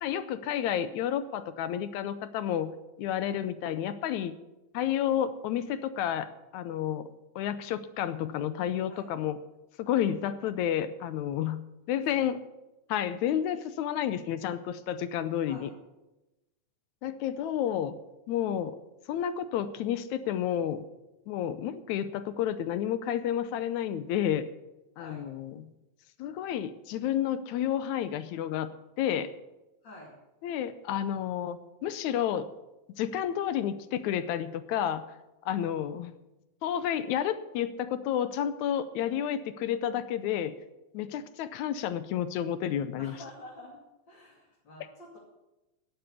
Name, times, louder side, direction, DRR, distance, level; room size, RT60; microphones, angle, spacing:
voice 1, 0.0-2.7 3.0-4.3 4.7-6.3 6.5-9.4 9.8-11.6 11.9-12.5 12.9-15.7 17.0-18.0 18.3-18.8 19.1-20.8 21.3-24.5 25.0-25.7 26.2-28.7 29.0-29.3 30.4-32.5 33.0-35.0 35.5-36.1 36.6-40.5 40.9-43.1, left 10 dB, 85° left, 12 dB, 2.0 m, -30 dB
voice 2, 25.0-25.3 29.8-30.1 43.0-43.8 44.1-45.2, left 1 dB, 40° left, -3 dB, 3.1 m, -48 dB
12.5 x 7.7 x 8.3 m, 1.0 s
omnidirectional pair, 3.4 m